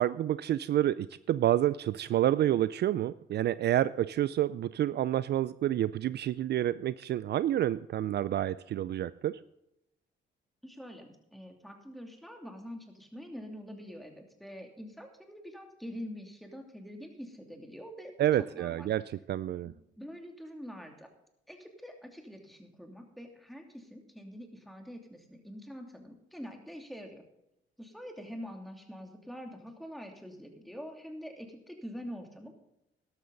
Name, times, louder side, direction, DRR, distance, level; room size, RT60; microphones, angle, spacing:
voice 1, 0.0-9.4 18.2-19.0 19.3-19.7, right 12 dB, 60° right, 17 dB, 0.4 m, -28 dB
voice 2, 10.6-18.3 18.5-18.9 19.6-21.1 21.5-27.2 27.8-32.5, equal, ahead, 3 dB, 2.7 m, -45 dB
12.5 x 12.0 x 4.0 m, 0.84 s
cardioid pair, 90°, 20 cm